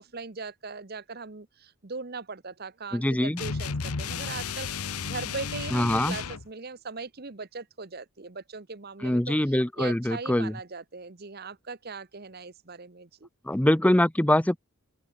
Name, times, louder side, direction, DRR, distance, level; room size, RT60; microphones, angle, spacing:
voice 1, 0.0-13.3, right 4 dB, 45° right, 1.1 m, -40 dB
voice 2, 2.9-3.4 5.7-6.2 9.0-10.5 13.5-14.6, left 1 dB, 5° left, 0.5 m, -23 dB
sound 1, 3.4-6.5, left 5 dB, 90° left, 1.0 m, -33 dB
open air
head